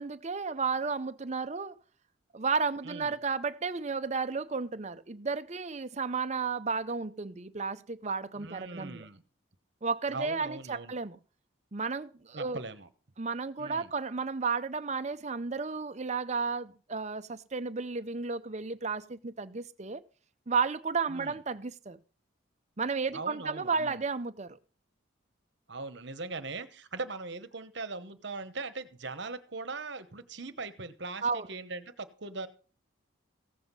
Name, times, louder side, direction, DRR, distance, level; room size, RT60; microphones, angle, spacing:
voice 1, 0.0-1.7 2.3-9.1 9.8-11.2 11.7-12.6 13.2-20.0 20.5-22.0 22.8-24.6 31.2-31.5, right 4 dB, 35° right, 0.6 m, -33 dB
voice 2, 2.8-3.2 8.3-9.2 10.1-10.9 12.3-12.9 13.6-13.9 21.1-21.4 23.1-24.0 25.7-32.5, right 3 dB, 55° right, 1.1 m, -40 dB
15.5 x 7.9 x 5.5 m
head